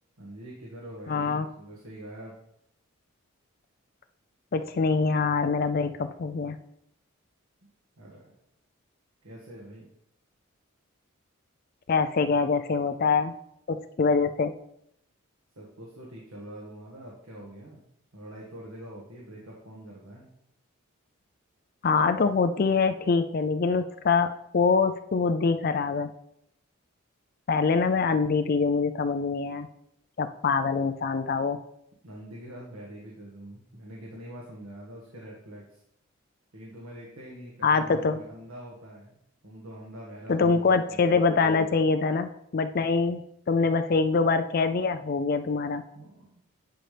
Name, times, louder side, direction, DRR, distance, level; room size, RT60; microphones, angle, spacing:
voice 1, 0.2-2.3 8.0-8.3 9.2-9.9 15.5-17.8 18.1-20.3 32.0-35.8 36.5-39.2 39.4-41.0 45.9-46.3, right 1 dB, 75° right, -4 dB, 1.6 m, -44 dB
voice 2, 1.1-1.5 4.5-6.6 11.9-13.3 13.7-14.5 21.8-26.1 27.5-29.7 30.2-31.6 37.6-38.2 40.3-43.2 43.5-45.8, left 4 dB, 45° left, 9 dB, 0.4 m, -24 dB
10.5 x 5.7 x 3.4 m, 0.76 s
head